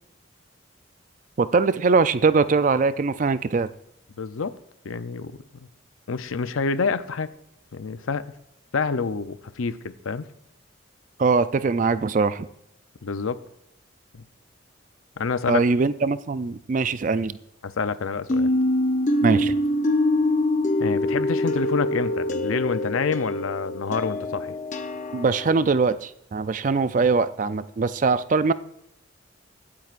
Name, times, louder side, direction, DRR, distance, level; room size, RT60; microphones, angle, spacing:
voice 1, 1.4-3.7 11.2-12.5 15.5-17.4 19.2-19.6 25.1-28.5, right 4 dB, 40° right, 14 dB, 0.4 m, -22 dB
voice 2, 4.2-4.6 4.8-5.7 6.1-7.3 7.7-8.2 8.7-10.3 13.0-13.4 14.1-14.2 15.2-15.6 17.6-18.5 20.8-24.6, left 5 dB, 85° left, 12 dB, 0.6 m, -28 dB
sound 1, 18.3-25.6, left 1 dB, 35° left, 0.7 m, -24 dB
23.5 x 8.8 x 2.5 m, 0.78 s
head